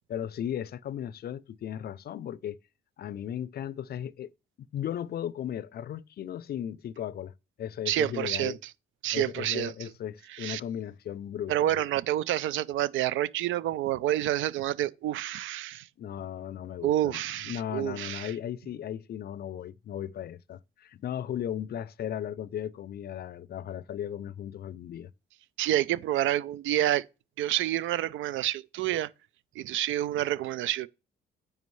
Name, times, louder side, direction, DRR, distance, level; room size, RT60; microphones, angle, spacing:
voice 1, 0.1-2.6 3.0-4.3 4.7-7.3 7.6-8.6 9.1-11.8 16.0-25.1, left 10 dB, 55° left, 0.4 m, -36 dB
voice 2, 7.9-8.6 9.0-9.7 10.3-10.6 11.5-15.9 16.8-18.3 25.6-27.0 27.4-29.1 29.6-30.9, right 13 dB, 80° right, 0.4 m, -28 dB
9.4 x 5.1 x 3.2 m
cardioid pair, 90°, 20 cm